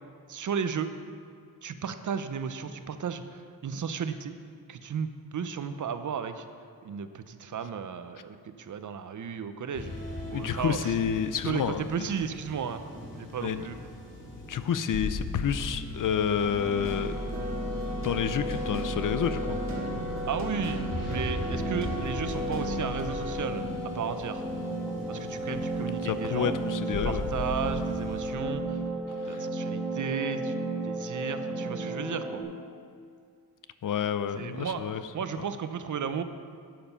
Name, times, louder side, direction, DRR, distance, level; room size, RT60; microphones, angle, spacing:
voice 1, 0.3-0.9 1.6-4.3 4.7-6.4 6.8-9.9 10.3-10.9 11.4-12.8 13.2-13.8 20.3-24.4 25.1-26.5 27.0-28.8 29.3-30.5 30.8-32.4 34.3-34.8 35.1-36.2, right 7 dB, 55° right, 10 dB, 0.6 m, -34 dB
sound 1, 9.7-28.3, left 1 dB, 40° left, 2.8 m, -39 dB
voice 2, 10.3-12.1 13.4-13.6 14.5-17.1 18.0-19.6 26.0-27.3 29.2-29.5 33.8-35.0, left 8 dB, 55° left, 12 dB, 0.6 m, -29 dB
sound 2, 16.4-32.4, right 1 dB, ahead, 1.6 m, -34 dB
sound 3, 16.8-23.3, right 2 dB, 35° right, 1.6 m, -37 dB
11.0 x 7.7 x 5.7 m, 2.2 s
wide cardioid pair, 140°, 37 cm